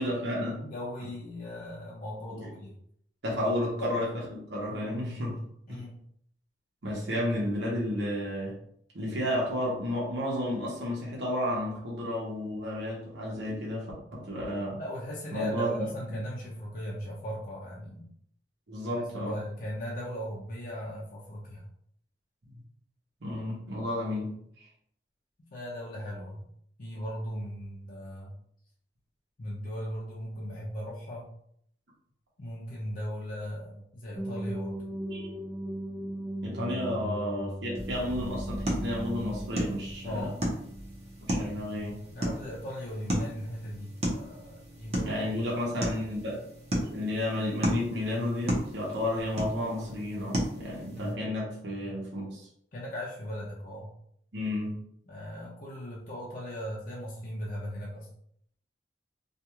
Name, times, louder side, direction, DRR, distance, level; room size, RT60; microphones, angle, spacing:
voice 1, 0.0-0.7 2.3-2.4 3.2-5.4 5.7-5.8 6.8-8.6 8.9-14.8 15.3-15.8 18.7-19.4 23.2-24.6 35.1-35.3 36.4-40.3 41.2-42.3 45.0-46.4 46.7-52.5 54.3-54.8, left 1 dB, 85° right, -4 dB, 0.9 m, -32 dB
voice 2, 0.7-2.7 3.8-3.9 5.7-6.0 14.8-18.1 19.0-21.6 25.5-26.5 26.8-28.4 29.4-31.3 32.4-34.8 37.0-37.2 40.0-40.4 42.1-45.2 50.9-51.2 52.7-53.9 55.1-58.1, equal, 50° left, -5 dB, 0.6 m, -38 dB
sound 1, 34.2-42.0, right 1 dB, 5° right, 0.3 m, -38 dB
sound 2, 37.7-51.1, equal, 40° right, 0.7 m, -35 dB
2.5 x 2.3 x 2.9 m, 0.68 s
head